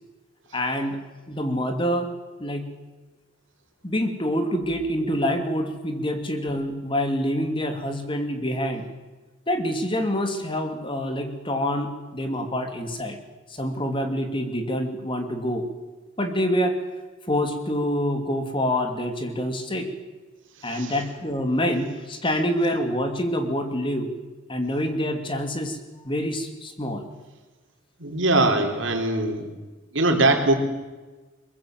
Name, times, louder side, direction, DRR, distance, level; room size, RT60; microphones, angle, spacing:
voice 1, 0.5-1.0 1.3-2.1 2.4-2.7 3.8-8.8 9.5-13.2 13.5-15.7 16.2-16.7 17.3-19.9 20.6-24.1 24.5-25.8 26.0-27.1, equal, 25° left, 6 dB, 2.7 m, -26 dB
voice 2, 28.0-29.4 29.9-30.5, right 2 dB, 70° right, 5 dB, 3.7 m, -21 dB
23.0 x 22.0 x 7.8 m, 1.2 s
head